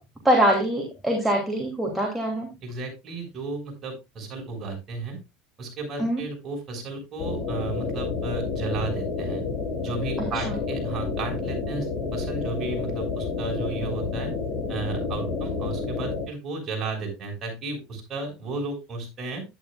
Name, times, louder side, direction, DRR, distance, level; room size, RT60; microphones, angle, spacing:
voice 1, 0.2-2.5 6.0-6.2 10.2-10.6, right 1 dB, 5° right, 0 dB, 3.1 m, -24 dB
voice 2, 2.6-5.2 5.6-9.4 9.8-14.3 14.7-19.4, right 3 dB, 40° right, 1 dB, 6.8 m, -34 dB
sound 1, 7.2-16.3, left 4 dB, 35° left, 6.9 m, -29 dB
11.0 x 11.0 x 2.5 m, 0.23 s
supercardioid pair, 105°, 0 cm